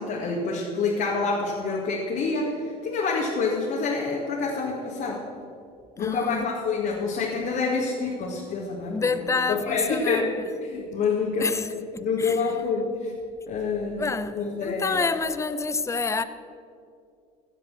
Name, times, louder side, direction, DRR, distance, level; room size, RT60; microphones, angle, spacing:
voice 1, 0.0-5.2 6.0-10.3 10.6-11.6 12.0-13.1 13.5-15.0, left 4 dB, 50° left, 2.0 m, -27 dB
voice 2, 6.0-6.5 8.9-10.3 11.4-11.7 11.9-12.4 14.0-16.2, left 4 dB, 15° left, 0.6 m, -28 dB
15.5 x 5.3 x 7.4 m
hypercardioid pair, 70°, 19 cm